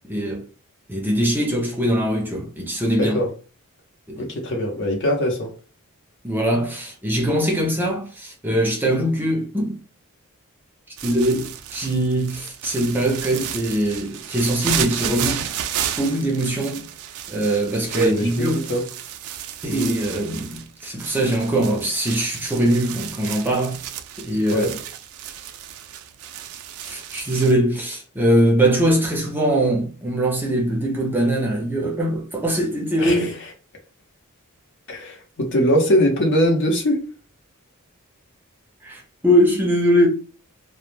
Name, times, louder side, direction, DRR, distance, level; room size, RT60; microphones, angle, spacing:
voice 1, 0.1-0.4 0.9-3.2 4.1-4.3 6.2-9.8 11.0-15.5 16.0-16.9 17.3-18.6 19.6-23.8 24.2-24.7 26.8-33.3 38.8-40.1, right 1 dB, 10° right, 0.4 m, -22 dB
voice 2, 4.2-5.5 17.9-18.8 24.5-24.7 33.0-33.3 34.9-37.0, equal, 55° left, 0.7 m, -21 dB
sound 1, 11.0-27.5, right 10 dB, 70° right, 0.3 m, -32 dB
2.1 x 2.0 x 3.1 m
head